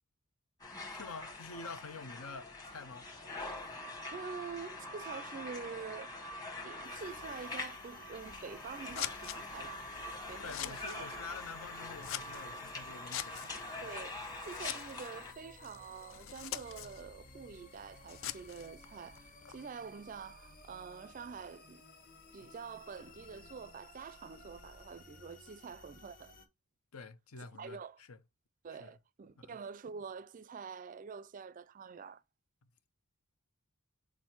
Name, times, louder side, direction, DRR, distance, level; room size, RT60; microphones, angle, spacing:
sound 1, 0.6-15.3, left 2 dB, 15° left, 1.1 m, -44 dB
voice 1, 0.9-3.1 3.6-3.7 10.4-13.9 26.9-28.2 28.8-28.9 29.4-29.5, left 4 dB, 80° left, 0.7 m, -48 dB
voice 2, 4.1-9.9 10.3-11.1 13.8-21.8 22.3-26.3 27.6-28.0 28.6-32.2, right 5 dB, 35° right, 0.4 m, -46 dB
sound 2, 6.8-26.5, left 3 dB, 40° left, 1.1 m, -56 dB
Scissors, 8.2-19.6, left 11 dB, 60° left, 0.4 m, -46 dB
6.3 x 4.1 x 4.5 m
head